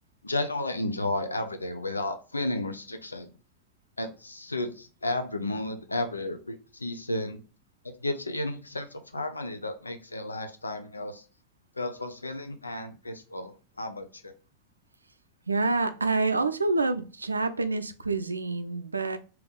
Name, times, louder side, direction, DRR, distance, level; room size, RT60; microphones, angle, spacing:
voice 1, 0.2-3.3 4.0-7.4 8.0-11.2 11.8-14.3, left 2 dB, 80° left, 0.6 m, -33 dB
voice 2, 15.5-19.2, right 3 dB, 80° right, 0.4 m, -27 dB
3.5 x 2.9 x 3.5 m
figure-of-eight pair, 90°, 0 cm